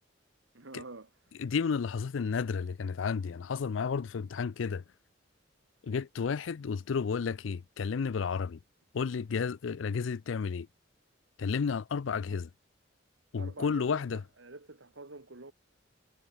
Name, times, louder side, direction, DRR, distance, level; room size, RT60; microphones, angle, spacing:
voice 1, 0.5-1.4 13.4-15.5, right 3 dB, 80° right, 1.8 m, -47 dB
voice 2, 1.4-4.8 5.8-8.6 8.9-10.7 11.4-12.5 13.3-14.2, left 5 dB, 85° left, 0.4 m, -32 dB
head